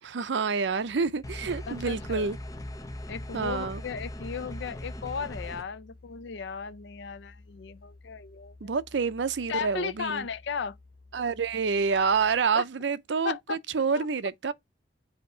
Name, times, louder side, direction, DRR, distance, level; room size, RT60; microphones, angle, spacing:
voice 1, 0.0-2.4 3.3-3.8 8.6-10.3 11.1-14.5, right 5 dB, 70° right, 0.5 m, -28 dB
Musical instrument, 0.6-12.6, left 2 dB, 50° left, 1.1 m, -54 dB
sound 1, 1.2-5.6, left 1 dB, 20° left, 0.7 m, -39 dB
voice 2, 1.7-2.3 3.1-8.8 9.5-10.8 12.5-12.6 13.2-13.6 13.9-14.1, left 6 dB, 65° left, 0.4 m, -35 dB
7.7 x 2.8 x 5.4 m
head